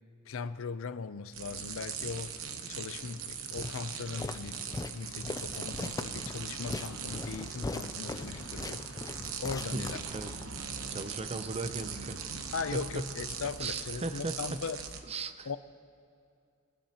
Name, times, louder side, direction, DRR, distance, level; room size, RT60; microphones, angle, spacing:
voice 1, 0.3-9.1 9.4-10.0 12.5-14.8 15.4-15.6, left 5 dB, 70° left, 14 dB, 0.5 m, -39 dB
sound 1, 1.3-15.0, right 6 dB, 70° right, 1.0 m, -40 dB
Walk footsteps, 3.6-10.5, left 2 dB, 15° left, 0.3 m, -40 dB
voice 2, 9.7-10.3 10.9-12.3 12.7-13.1 13.6-14.6 15.1-15.5, right 3 dB, 30° right, 11 dB, 0.6 m, -37 dB
21.0 x 19.0 x 2.9 m, 2.4 s
head